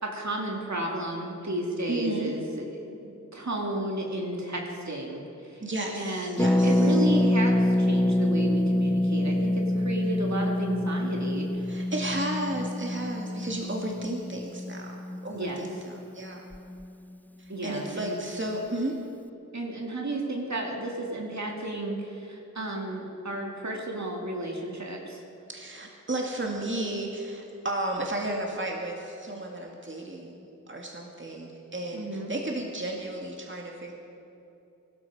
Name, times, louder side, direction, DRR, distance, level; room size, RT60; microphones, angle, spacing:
voice 1, 0.0-5.6 5.9-11.6 15.3-15.6 17.5-18.2 19.5-25.2 31.9-32.3, right 1 dB, 60° right, 0 dB, 2.3 m, -33 dB
voice 2, 1.9-2.3 5.6-7.0 11.7-16.4 17.4-19.0 25.5-33.9, right 1 dB, 40° right, 0 dB, 2.1 m, -33 dB
Harp, 6.4-16.0 16.3-16.4 16.5-16.8, left 1 dB, 5° left, 0.4 m, -26 dB
23.0 x 12.5 x 4.9 m, 2.7 s
wide cardioid pair, 70°, 31 cm